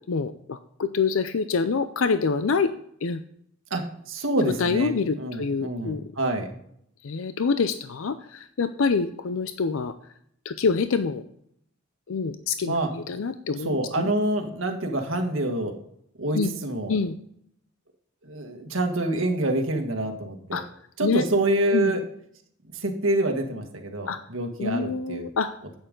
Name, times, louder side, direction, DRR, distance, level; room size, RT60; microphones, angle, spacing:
voice 1, 0.1-2.7 3.0-3.2 4.6-6.0 7.0-9.9 10.5-11.2 12.1-14.1 16.3-16.5 16.9-17.1 20.5-20.6 21.0-21.2 21.7-21.9 24.1-24.2 24.6-25.5, left 5 dB, 80° left, 11 dB, 0.5 m, -26 dB
voice 2, 3.7-6.5 12.7-12.9 13.6-15.8 16.2-17.0 18.2-20.6 21.0-22.0 22.7-25.3, right 1 dB, 75° right, 3 dB, 1.8 m, -27 dB
11.0 x 8.9 x 3.8 m, 0.69 s
head